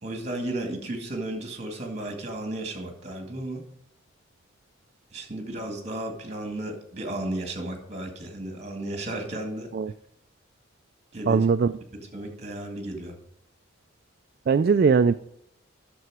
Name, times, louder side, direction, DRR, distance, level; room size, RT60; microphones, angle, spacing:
voice 1, 0.0-3.6 5.1-9.7 11.1-11.5 12.1-13.2, right 1 dB, 35° right, 4 dB, 2.1 m, -34 dB
voice 2, 11.3-11.7 14.5-15.1, right 5 dB, 50° right, 10 dB, 0.3 m, -20 dB
9.4 x 6.9 x 4.8 m, 0.72 s
head